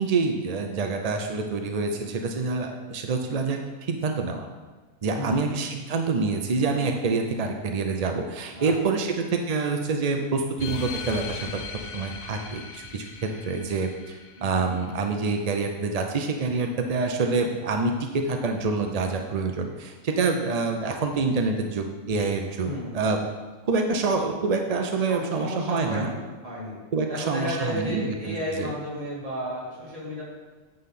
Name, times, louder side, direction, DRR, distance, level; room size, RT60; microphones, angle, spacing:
voice 1, 0.0-3.6 3.9-4.5 5.0-11.6 11.9-23.3 23.7-26.1 26.9-28.7, right 4 dB, 60° right, 4 dB, 0.4 m, -26 dB
voice 2, 5.1-5.6 8.5-8.7 14.4-14.7 22.6-22.9 25.1-26.7 27.1-30.2, equal, 25° right, -7 dB, 2.6 m, -33 dB
sound 1, 10.6-15.6, left 6 dB, 55° left, 0.7 m, -39 dB
9.3 x 3.9 x 5.8 m, 1.3 s
omnidirectional pair, 1.5 m